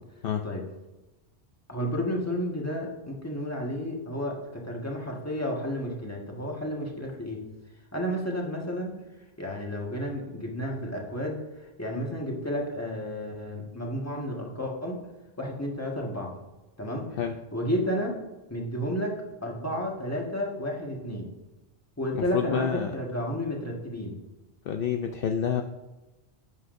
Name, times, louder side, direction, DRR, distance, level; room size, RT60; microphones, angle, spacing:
voice 1, 1.7-7.4 7.9-8.9 9.4-11.4 11.8-15.0 15.4-16.3 16.8-17.1 17.5-18.1 18.5-21.3 22.0-24.2, equal, 15° left, -1 dB, 1.5 m, -31 dB
voice 2, 22.1-22.9 24.7-25.6, left 8 dB, 65° left, 6 dB, 0.7 m, -28 dB
11.0 x 8.3 x 2.6 m, 1.1 s
omnidirectional pair, 1.1 m